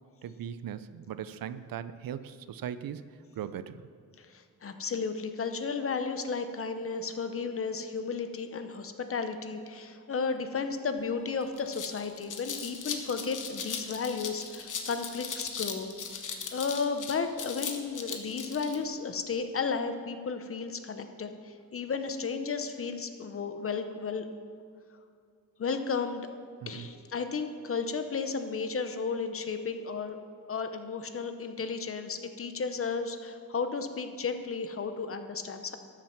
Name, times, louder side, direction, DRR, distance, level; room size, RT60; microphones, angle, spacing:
voice 1, 0.2-3.0 3.4-3.9 26.6-26.9, right 9 dB, 85° right, 14 dB, 0.6 m, -39 dB
voice 2, 4.2-15.9 16.5-24.2 25.6-26.3 26.7-30.2 30.5-35.8, left 5 dB, 40° left, 8 dB, 0.8 m, -33 dB
sound 1, 11.0-11.1 11.4-18.8, left 6 dB, 65° left, 1.1 m, -38 dB
13.0 x 7.5 x 5.8 m, 2.3 s
wide cardioid pair, 165°, 34 cm